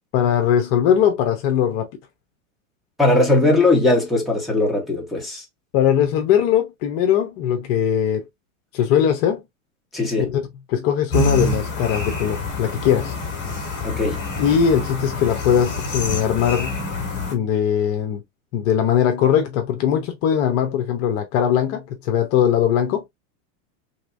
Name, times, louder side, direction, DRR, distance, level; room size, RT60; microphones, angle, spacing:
voice 1, 0.1-1.9 5.7-8.3 8.7-9.4 10.3-10.4 10.7-13.2 14.4-16.7 17.3-18.2 18.5-23.0, left 9 dB, 40° left, 0.8 m, -20 dB
voice 2, 3.0-5.4 9.9-10.3 13.8-14.2, left 2 dB, ahead, 1.1 m, -19 dB
sound 1, 11.1-17.3, left 2 dB, 25° left, 1.6 m, -26 dB
3.5 x 2.9 x 2.5 m
supercardioid pair, 140°, 40 cm